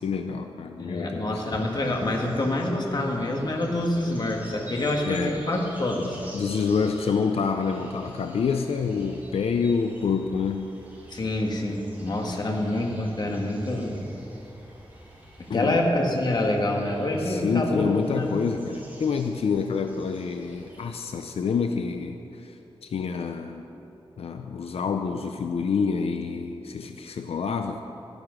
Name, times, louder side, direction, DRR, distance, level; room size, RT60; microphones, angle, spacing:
voice 1, 0.0-1.4 5.0-5.4 6.3-10.7 15.5-15.8 17.2-22.5 22.8-23.6 24.2-27.8, left 5 dB, 90° left, 6 dB, 0.5 m, -27 dB
voice 2, 0.8-6.3 11.1-14.0 15.5-18.3, left 1 dB, 45° left, 1 dB, 1.6 m, -26 dB
sound 1, 1.4-20.9, right 1 dB, 15° right, 2.8 m, -48 dB
13.0 x 10.0 x 6.1 m, 3.0 s
wide cardioid pair, 145°, 10 cm